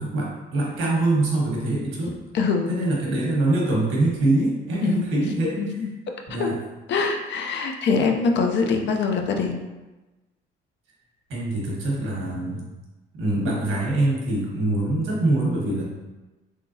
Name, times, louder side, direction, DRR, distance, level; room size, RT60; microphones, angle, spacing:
voice 1, 0.0-2.1 2.7-5.6 6.3-6.6 11.3-12.6 13.2-15.8, right 2 dB, 80° right, -3 dB, 1.2 m, -24 dB
voice 2, 2.3-2.9 4.8-5.0 5.6-5.9 6.3-6.5 6.9-9.6, left 4 dB, 60° left, 4 dB, 0.5 m, -23 dB
3.6 x 3.4 x 2.7 m, 1.1 s
cardioid pair, 100°, 21 cm